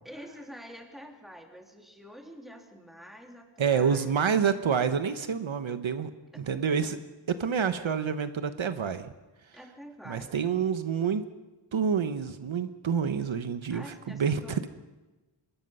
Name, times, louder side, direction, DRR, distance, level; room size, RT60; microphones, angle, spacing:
voice 1, 0.0-4.3 6.3-7.0 9.5-10.4 13.7-14.6, equal, ahead, 2 dB, 3.0 m, -47 dB
voice 2, 3.6-6.1 6.4-7.0 7.3-9.1 10.1-11.2 11.7-14.7, right 6 dB, 75° right, 10 dB, 1.1 m, -28 dB
24.5 x 21.5 x 5.5 m, 1.1 s
wide cardioid pair, 115°, 48 cm